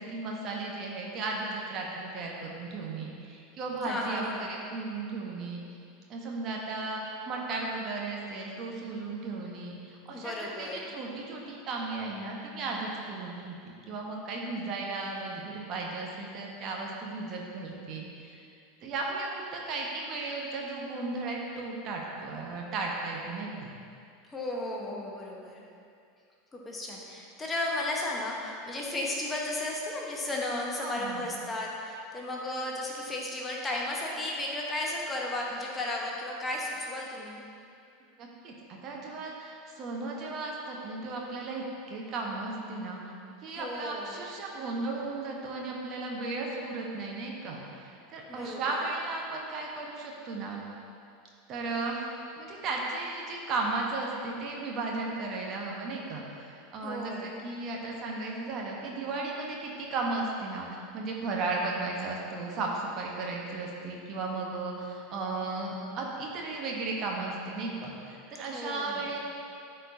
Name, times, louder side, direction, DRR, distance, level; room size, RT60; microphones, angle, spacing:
voice 1, 0.0-5.6 6.1-10.3 10.6-13.5 13.9-18.5 18.8-23.7 30.8-31.2 38.2-43.0 43.4-50.6 51.5-69.2, right 3 dB, 40° right, -2 dB, 1.2 m, -35 dB
voice 2, 3.8-4.6 10.1-10.9 24.3-25.6 26.5-37.4 43.6-44.2 48.3-48.8 56.8-57.3 68.5-69.1, left 1 dB, 20° left, -2 dB, 1.2 m, -34 dB
13.0 x 4.5 x 2.8 m, 2.5 s
figure-of-eight pair, 80°, 0 cm